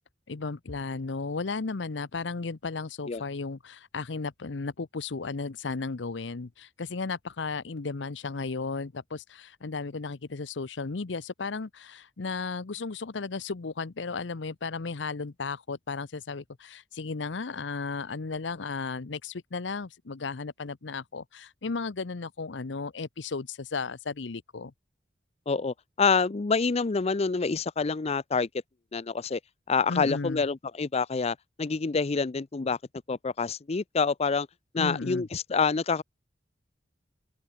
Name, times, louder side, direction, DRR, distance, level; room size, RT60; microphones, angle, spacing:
voice 1, 0.3-24.7 29.9-30.4 34.8-35.3, left 4 dB, 80° left, 0.8 m, -34 dB
voice 2, 25.5-28.5 28.9-29.4 29.7-32.8 33.1-34.5 34.7-36.0, left 4 dB, 35° left, 0.5 m, -27 dB
open air
head